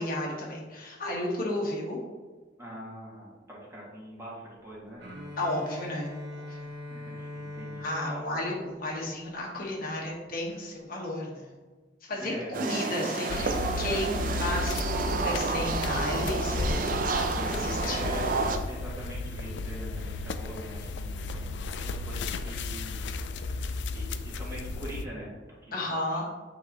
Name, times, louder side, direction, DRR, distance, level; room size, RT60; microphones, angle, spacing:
voice 1, 0.0-2.0 5.4-6.7 7.8-11.5 12.0-17.0 17.3-18.0 25.7-26.2, left 1 dB, 55° left, -3 dB, 1.3 m, -33 dB
voice 2, 2.6-5.0 6.9-8.2 12.2-12.8 17.5-18.2 18.6-23.6 23.9-25.3 25.6-25.7, right 1 dB, 15° right, -6 dB, 1.8 m, -43 dB
Bowed string instrument, 5.0-9.8, left 1 dB, 75° right, 1.2 m, -42 dB
sound 1, 12.5-18.6, right 3 dB, 50° right, 0.6 m, -30 dB
sound 2, 13.3-25.1, left 3 dB, 75° left, 0.4 m, -34 dB
8.4 x 4.0 x 2.9 m, 1.3 s
head